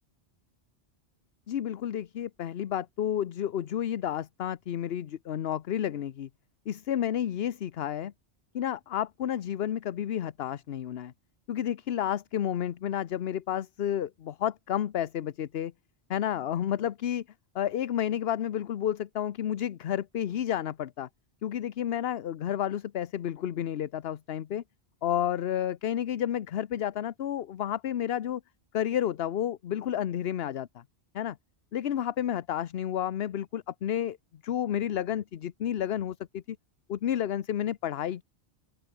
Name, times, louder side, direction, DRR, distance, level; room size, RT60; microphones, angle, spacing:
voice 1, 1.5-6.3 6.7-8.1 8.5-11.1 11.5-15.7 16.1-17.2 17.5-21.1 21.4-24.6 25.0-28.4 28.7-30.8 31.1-31.4 31.7-34.2 34.4-36.6 36.9-38.2, left 10 dB, 65° left, 0.9 m, -31 dB
open air
omnidirectional pair, 1.1 m